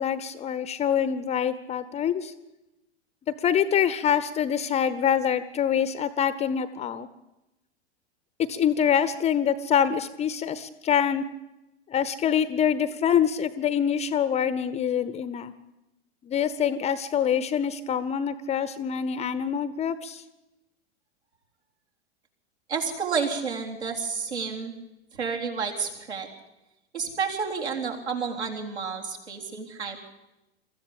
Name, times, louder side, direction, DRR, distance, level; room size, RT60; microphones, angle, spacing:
voice 1, 0.0-2.3 3.4-7.1 8.5-11.3 11.9-15.5 16.2-20.2, left 8 dB, 20° left, 15 dB, 0.8 m, -25 dB
voice 2, 22.7-24.7 25.1-26.3 26.9-30.1, right 5 dB, 70° right, 1 dB, 3.8 m, -30 dB
23.5 x 14.0 x 8.6 m, 0.97 s
figure-of-eight pair, 95°, 35 cm